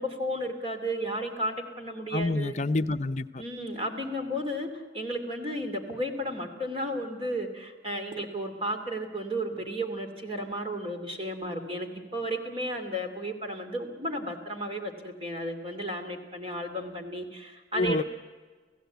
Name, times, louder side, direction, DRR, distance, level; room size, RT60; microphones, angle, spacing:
voice 1, 0.0-2.6 3.4-18.0, equal, 30° right, 4 dB, 2.8 m, -33 dB
voice 2, 2.1-3.4 17.7-18.0, left 2 dB, 40° left, 10 dB, 0.6 m, -27 dB
28.5 x 16.5 x 8.2 m, 1.5 s
head